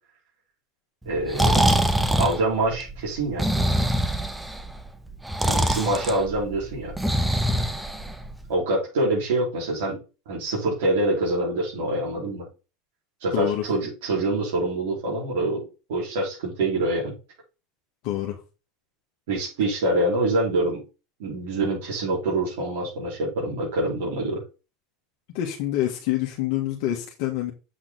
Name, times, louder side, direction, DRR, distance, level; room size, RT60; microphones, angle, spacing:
voice 1, 1.0-1.7 2.2-3.4 5.5-6.9 8.5-10.0 10.3-12.4 13.2-15.6 15.9-17.1 19.3-20.8 21.2-24.4, right 2 dB, 75° right, -5 dB, 4.8 m, -25 dB
Breathing, 1.1-8.5, right 1 dB, 5° right, 1.3 m, -24 dB
voice 2, 13.3-13.6 18.0-18.4 25.3-27.5, left 13 dB, 65° left, 0 dB, 1.7 m, -26 dB
8.0 x 6.0 x 4.1 m, 0.31 s
hypercardioid pair, 90°, 0 cm